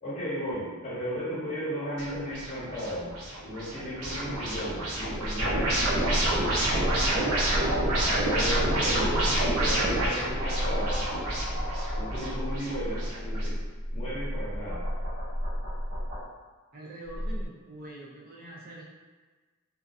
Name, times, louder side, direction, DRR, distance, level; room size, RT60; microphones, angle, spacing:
voice 1, 0.0-3.1 3.4-6.5 8.0-9.2 9.5-11.0 11.9-13.6 13.9-14.8, equal, 35° left, -9 dB, 0.9 m, -35 dB
sound 1, 2.0-13.5, right 1 dB, 90° right, 0.6 m, -29 dB
sound 2, 5.2-16.2 17.1-17.5, equal, 65° right, 1.0 m, -32 dB
voice 2, 9.5-10.0 16.7-18.8, right 1 dB, 40° right, -5 dB, 0.4 m, -44 dB
2.2 x 2.2 x 2.5 m, 1.3 s
head